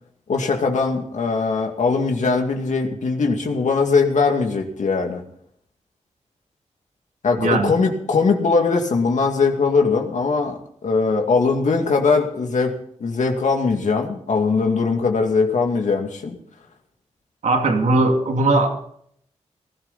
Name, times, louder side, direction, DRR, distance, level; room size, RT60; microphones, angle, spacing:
voice 1, 0.3-5.2 7.2-12.7 13.0-16.4, left 4 dB, 80° left, 3 dB, 2.3 m, -20 dB
voice 2, 7.4-7.7 17.4-18.8, right 2 dB, 85° right, 3 dB, 2.5 m, -19 dB
19.0 x 13.0 x 4.2 m, 0.66 s
wide cardioid pair, 85°, 12 cm